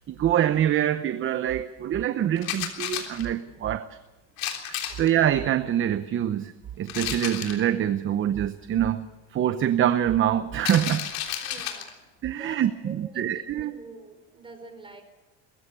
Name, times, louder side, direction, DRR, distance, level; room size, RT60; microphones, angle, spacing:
voice 1, 0.1-4.0 4.7-6.5 6.8-9.1 9.3-11.1 12.2-13.8, right 11 dB, 35° right, 11 dB, 0.8 m, -25 dB
sound 1, 2.4-3.3 4.4-5.1 6.9-7.6 10.6-11.9, left 10 dB, 70° left, 3.6 m, -32 dB
voice 2, 11.4-12.1 12.3-15.0, right 3 dB, 15° right, 6 dB, 4.6 m, -46 dB
21.5 x 15.0 x 8.4 m, 1.1 s
cardioid pair, 130°, 36 cm